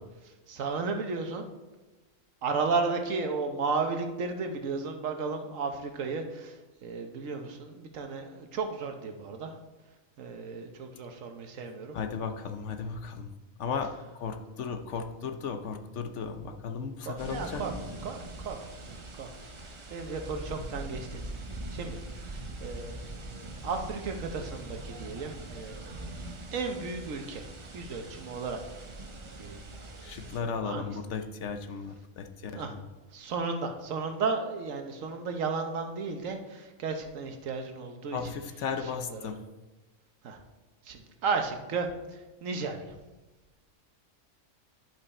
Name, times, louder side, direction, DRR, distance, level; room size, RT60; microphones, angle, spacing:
voice 1, 0.2-1.5 2.4-9.6 10.2-12.0 17.0-17.7 18.0-19.3 19.6-21.3 21.7-26.1 26.5-27.5 27.7-28.6 29.4-29.6 30.6-30.9 32.5-32.7 33.1-38.2 38.8-39.3 40.2-40.4 40.8-42.9, right 4 dB, 70° right, 5 dB, 1.3 m, -34 dB
voice 2, 11.9-13.3 13.6-17.6 30.0-32.8 38.1-39.4, left 5 dB, 65° left, 6 dB, 0.9 m, -35 dB
sound 1, 17.2-30.4, right 2 dB, 35° right, 0.5 m, -42 dB
10.5 x 5.5 x 4.2 m, 1.1 s
omnidirectional pair, 1.4 m